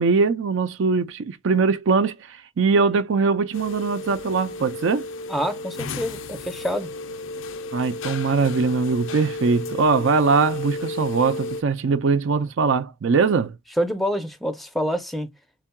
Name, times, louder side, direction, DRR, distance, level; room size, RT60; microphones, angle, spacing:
voice 1, 0.0-5.1 7.7-13.5, right 4 dB, 60° right, 0.4 m, -21 dB
sound 1, 3.5-11.6, left 2 dB, 60° left, 0.5 m, -33 dB
voice 2, 5.3-6.9 13.8-15.3, equal, ahead, 0.5 m, -26 dB
5.7 x 3.7 x 2.2 m
head